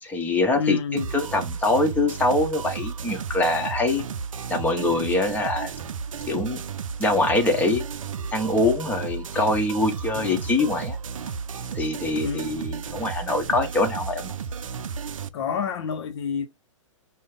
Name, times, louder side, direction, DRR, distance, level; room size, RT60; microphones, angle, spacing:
voice 1, 0.0-0.8 1.1-4.0 4.5-5.7 6.3-6.6 7.0-7.8 8.3-11.0 11.7-14.3, left 2 dB, 10° left, 1.2 m, -24 dB
voice 2, 0.5-1.1 9.3-9.4 10.2-10.5 12.2-12.5 15.3-16.5, left 6 dB, 55° left, 0.7 m, -29 dB
sound 1, 1.0-15.3, right 6 dB, 75° right, 0.5 m, -33 dB
5.2 x 2.3 x 3.5 m
hypercardioid pair, 120°, 17 cm